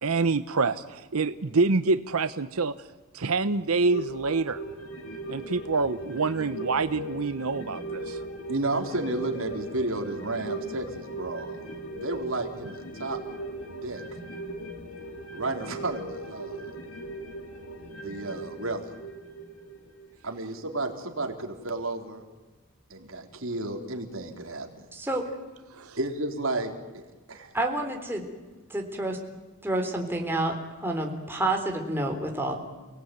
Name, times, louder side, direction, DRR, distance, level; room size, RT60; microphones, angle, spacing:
voice 1, 0.0-2.7 3.1-4.6 5.3-8.2 25.7-26.0, right 3 dB, 90° right, 12 dB, 0.9 m, -26 dB
sound 1, 3.9-20.7 21.0-21.1, right 2 dB, 90° left, 3.0 m, -39 dB
voice 2, 8.5-11.7 12.0-13.2 13.7-14.0 15.3-16.7 18.0-18.9 20.2-22.2 22.9-24.7 26.0-27.0 27.3-27.5, right 2 dB, 65° right, 4 dB, 3.8 m, -32 dB
voice 3, 24.9-25.2 27.5-28.2 28.7-29.2 29.6-32.6, right 1 dB, 10° right, 2 dB, 3.7 m, -29 dB
29.5 x 18.5 x 9.3 m, 1.2 s
head